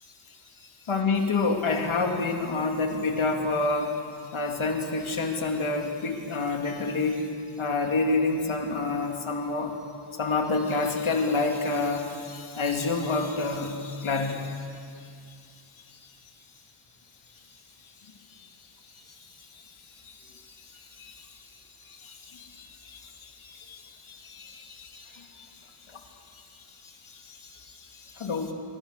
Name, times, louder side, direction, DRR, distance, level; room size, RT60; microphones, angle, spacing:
voice 1, 0.9-4.0 4.3-7.3 7.6-9.7 10.2-14.6 18.4-18.5 20.0-20.3 20.8-21.3 21.9-25.5 25.9-26.0 27.0-28.5, left 3 dB, 75° left, 2 dB, 3.0 m, -28 dB
27.5 x 24.0 x 6.8 m, 2.4 s
wide cardioid pair, 115°, 49 cm